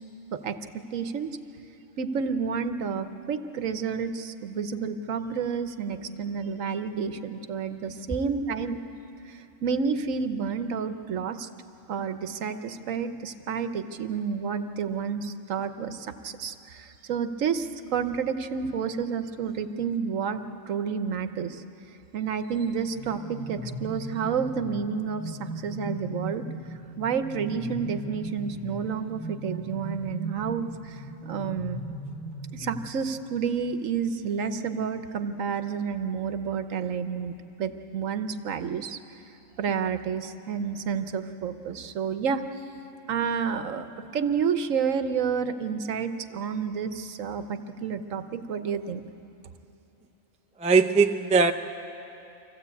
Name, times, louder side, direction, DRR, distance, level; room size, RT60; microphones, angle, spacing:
voice 1, 0.3-1.3 2.0-8.8 9.3-11.5 11.9-21.6 22.1-26.4 27.0-31.8 32.5-39.0 39.6-42.4 43.1-43.9 44.1-49.0, right 6 dB, 80° right, 9 dB, 1.3 m, -30 dB
sound 1, 22.8-33.3, right 1 dB, 40° left, 6.5 m, -38 dB
voice 2, 50.6-51.5, right 4 dB, 10° right, 7 dB, 0.3 m, -20 dB
25.5 x 15.5 x 8.4 m, 2.8 s
omnidirectional pair, 1.4 m